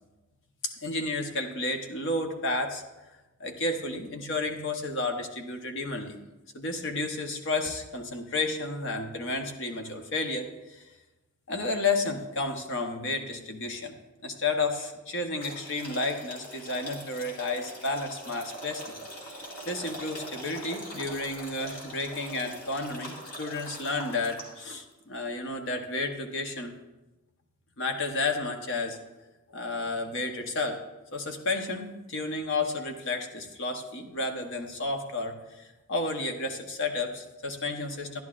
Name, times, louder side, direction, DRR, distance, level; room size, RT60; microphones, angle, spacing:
voice 1, 0.6-2.8 3.4-6.2 6.5-10.9 11.5-13.9 14.2-19.0 19.4-26.7 27.8-29.1 29.5-30.8 31.1-38.2, left 3 dB, 55° left, 4 dB, 1.0 m, -32 dB
sound 1, 15.4-24.7, equal, 90° left, 2.2 m, -42 dB
12.5 x 10.5 x 2.5 m, 1.1 s
head